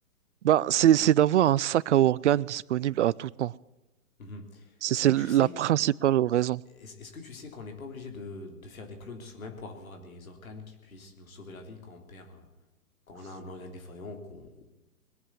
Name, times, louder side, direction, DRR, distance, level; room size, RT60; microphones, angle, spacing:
voice 1, 0.4-3.5 4.8-6.6, right 12 dB, 55° right, 23 dB, 0.5 m, -23 dB
voice 2, 4.2-5.5 6.7-12.5 13.1-14.7, left 3 dB, 70° left, 4 dB, 3.5 m, -44 dB
21.0 x 7.8 x 8.3 m, 1.0 s
hypercardioid pair, 135°, 43 cm